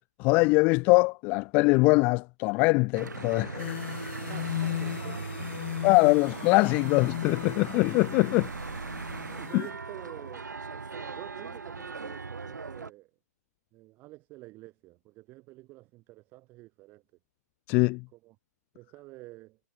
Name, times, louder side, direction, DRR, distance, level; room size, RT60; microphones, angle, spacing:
voice 1, 0.2-3.8 5.8-8.5 9.5-9.6 17.7-18.0, left 28 dB, 15° left, 0.3 m, -23 dB
Church bell / Traffic noise roadway noise, 2.9-12.9, right 4 dB, 85° right, 2.9 m, -39 dB
sound 1, 3.6-9.7, left 13 dB, 40° left, 1.4 m, -37 dB
voice 2, 4.1-5.2 9.3-13.1 13.7-17.0 18.1-18.4 18.7-19.6, right 20 dB, 20° right, 3.5 m, -48 dB
hypercardioid pair, 150°, 9 cm